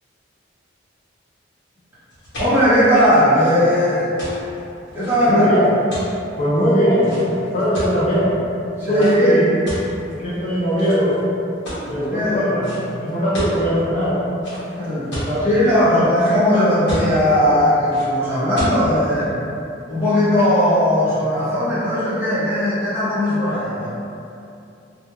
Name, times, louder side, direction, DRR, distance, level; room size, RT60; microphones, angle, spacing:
sound 1, 2.1-8.2 8.9-9.2 9.7-10.4 10.8-11.2 11.6-12.0 12.6-12.8 13.1-13.6 14.4-15.3 15.8-16.5 16.9-17.3 17.9-18.1 18.6-18.8, equal, 65° left, 0.9 m, -31 dB
voice 1, 2.4-4.1 4.9-5.5 8.8-9.3 11.8-12.4 14.7-15.1 15.4-19.3 19.9-23.9, equal, 10° right, -13 dB, 0.8 m, -18 dB
voice 2, 5.3-5.7 6.4-8.3 8.9-9.5 10.1-11.2 11.9-12.7 13.0-14.3 15.0-15.5 15.8-16.1, equal, 35° left, -9 dB, 0.4 m, -20 dB
2.2 x 2.1 x 3.0 m, 2.6 s
head